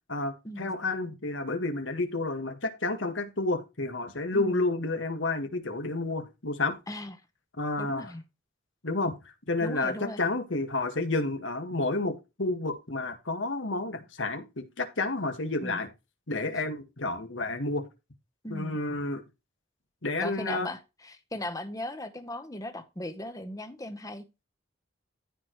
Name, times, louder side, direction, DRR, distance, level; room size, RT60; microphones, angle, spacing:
voice 1, 0.1-6.8 7.6-8.1 8.8-15.9 16.3-17.8 18.5-19.2 20.0-20.7, left 2 dB, 75° left, 1.8 m, -30 dB
voice 2, 4.3-4.6 6.9-7.2 7.8-8.2 9.6-10.2 15.6-15.8 18.4-18.8 20.2-24.2, left 1 dB, 20° left, 1.0 m, -38 dB
14.5 x 4.9 x 3.2 m
head